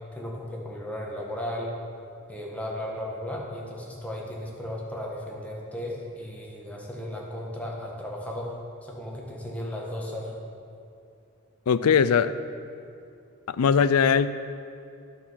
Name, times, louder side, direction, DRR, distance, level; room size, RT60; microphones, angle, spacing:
voice 1, 0.1-1.7 2.3-8.5 8.8-10.3, left 1 dB, 5° left, -3 dB, 1.6 m, -35 dB
voice 2, 11.7-12.3 13.5-14.3, left 6 dB, 85° left, 14 dB, 0.4 m, -20 dB
10.0 x 6.5 x 7.3 m, 2.5 s
head